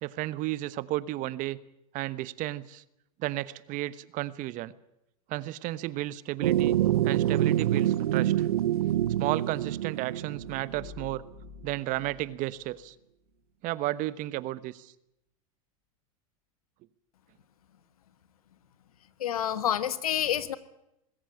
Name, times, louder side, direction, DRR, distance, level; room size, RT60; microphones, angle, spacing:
voice 1, 0.0-1.6 1.9-2.8 3.2-4.7 5.3-6.8 7.0-8.5 9.2-11.2 11.6-12.9 13.6-14.9, right 16 dB, 45° right, 17 dB, 1.1 m, -33 dB
sound 1, 6.4-11.0, right 12 dB, 80° right, 0.8 m, -26 dB
sound 2, 10.3-13.0, left 9 dB, 30° left, 6.9 m, -50 dB
voice 2, 19.2-20.6, left 10 dB, 85° left, 14 dB, 1.5 m, -28 dB
20.5 x 16.5 x 8.7 m, 0.84 s
hypercardioid pair, 100°, 18 cm